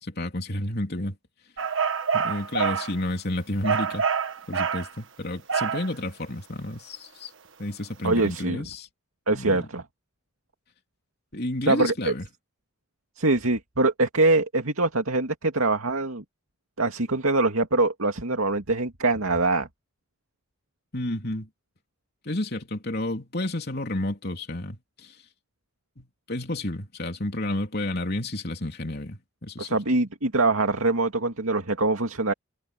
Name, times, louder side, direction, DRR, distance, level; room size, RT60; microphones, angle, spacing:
voice 1, 0.0-1.2 2.1-4.1 4.5-7.3 7.6-8.9 9.3-9.7 11.3-12.3 20.9-21.5 22.3-25.2 26.0-29.8, left 1 dB, 50° left, 3.5 m, -31 dB
sound 1, 1.6-2.9 3.6-4.9 5.5-5.9, right 6 dB, 65° right, 1.5 m, -26 dB
voice 2, 8.0-8.6 9.3-9.8 11.7-12.1 13.2-16.2 16.8-19.7 29.6-32.3, right 2 dB, 85° right, 2.4 m, -23 dB
head